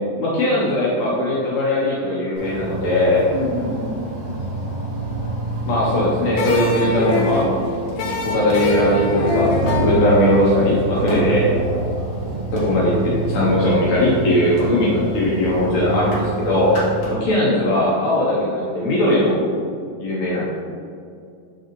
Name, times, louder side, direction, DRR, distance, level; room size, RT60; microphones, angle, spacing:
voice 1, 0.2-3.3 5.7-7.6 8.2-11.4 12.5-16.7 17.1-19.4 20.0-20.4, left 1 dB, 65° left, -6 dB, 1.9 m, -19 dB
sound 1, 2.4-17.0, right 2 dB, 50° right, 2.2 m, -27 dB
sound 2, 3.0-3.9 4.8-4.9 5.5-6.2 7.1-7.2 7.9-8.0 8.3-8.6 9.6-10.2 10.9-11.5 12.2-13.1 13.6-13.9 14.6-14.7 15.0-15.2 15.5-16.4 16.6-17.3 17.6-17.7, equal, 50° left, 1.7 m, -32 dB
voice 2, 3.3-4.4 11.2-11.9, right 1 dB, 80° right, -2 dB, 1.9 m, -29 dB
sound 3, 6.4-11.4, left 2 dB, 85° left, 2.5 m, -24 dB
6.9 x 5.4 x 3.1 m, 2.3 s
omnidirectional pair, 4.2 m